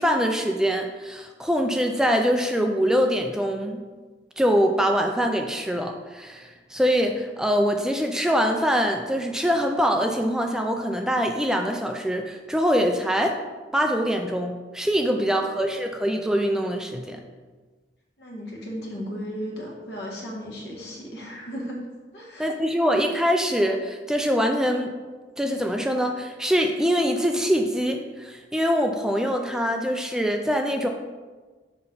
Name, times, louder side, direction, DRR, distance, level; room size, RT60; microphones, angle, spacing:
voice 1, 0.0-3.8 4.4-13.4 13.7-17.2 22.4-24.9 25.4-30.9, equal, 5° right, 3 dB, 0.3 m, -24 dB
voice 2, 15.1-15.5 18.2-21.8 22.1-22.5, equal, 70° left, -3 dB, 1.7 m, -36 dB
5.9 x 5.4 x 3.9 m, 1.4 s
head